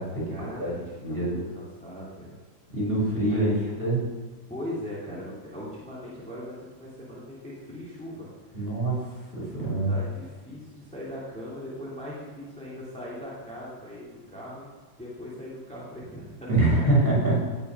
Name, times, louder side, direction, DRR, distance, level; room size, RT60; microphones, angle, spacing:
voice 1, 0.3-2.4 3.3-3.7 4.5-8.8 9.5-14.7 15.0-16.5 16.8-17.0, equal, 5° left, -7 dB, 2.7 m, -40 dB
voice 2, 1.0-1.4 2.7-4.1 8.5-9.9 16.5-17.4, right 2 dB, 30° right, -6 dB, 5.2 m, -25 dB
17.5 x 6.9 x 6.0 m, 1.4 s
omnidirectional pair, 2.0 m